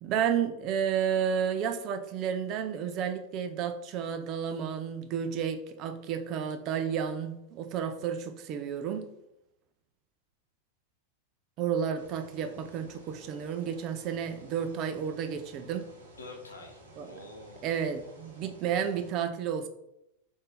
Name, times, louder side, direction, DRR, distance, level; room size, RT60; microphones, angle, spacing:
voice 1, 0.0-9.1 11.6-15.9 17.0-17.1 17.6-19.7, right 8 dB, 45° right, 0.5 m, -31 dB
sound 1, 11.9-19.1, equal, 75° right, 1.1 m, -54 dB
voice 2, 16.2-17.7, left 2 dB, 90° left, 0.9 m, -47 dB
3.6 x 2.6 x 4.1 m
hypercardioid pair, 95°, 0 cm